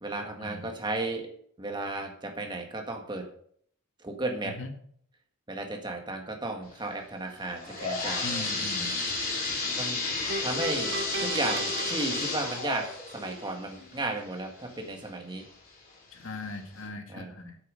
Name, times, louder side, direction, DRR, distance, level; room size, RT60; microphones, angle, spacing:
voice 1, 0.0-1.3 1.6-3.3 4.0-4.6 5.5-8.5 9.8-10.1 10.4-15.5 17.1-17.3, right 2 dB, 20° right, 3 dB, 1.7 m, -34 dB
sound 1, 7.4-15.0 15.5-15.6 16.3-16.4 16.8-16.9, left 3 dB, 40° left, 4.1 m, -32 dB
voice 2, 8.2-8.9 16.1-17.6, left 2 dB, 60° left, 5 dB, 1.8 m, -39 dB
sound 2, 10.3-13.5, right 2 dB, 50° right, 1.3 m, -36 dB
9.3 x 8.5 x 6.4 m, 0.63 s
head